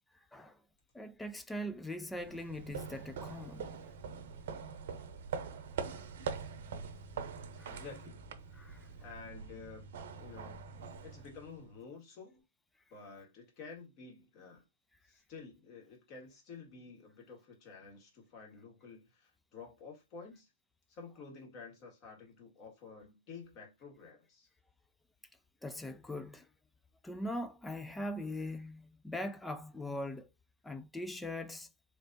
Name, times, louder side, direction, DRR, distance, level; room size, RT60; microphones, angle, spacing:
voice 1, 0.9-3.7 5.9-6.0 7.6-7.8 8.5-8.9 25.6-26.5 27.0-30.3 30.6-31.7, left 1 dB, 5° left, 0.3 m, -41 dB
sound 1, 2.1-11.8, right 6 dB, 60° right, 0.7 m, -44 dB
voice 2, 7.7-8.2 9.0-10.6 11.0-12.4 12.9-14.6 15.0-20.5 20.9-24.5, left 5 dB, 35° left, 2.0 m, -51 dB
4.0 x 3.2 x 2.7 m
hypercardioid pair, 125°, 0 cm